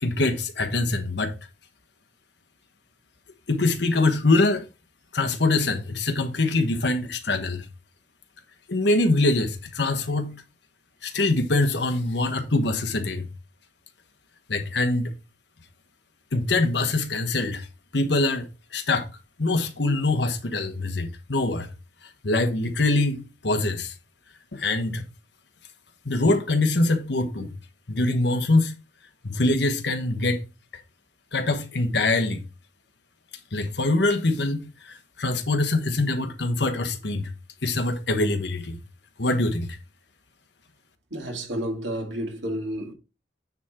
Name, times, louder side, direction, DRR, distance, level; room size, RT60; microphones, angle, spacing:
voice 1, 0.0-1.3 3.5-4.6 5.1-7.6 8.7-10.4 11.0-13.3 14.5-15.1 16.3-17.7 17.9-19.1 19.4-21.7 22.2-23.9 24.5-25.0 26.0-27.5 27.9-28.7 29.2-30.4 31.3-32.4 33.5-37.3 37.6-38.8 39.2-39.8, left 2 dB, 65° left, 1.2 m, -24 dB
voice 2, 41.1-42.9, right 1 dB, 80° right, 2.4 m, -30 dB
9.5 x 3.7 x 4.3 m
head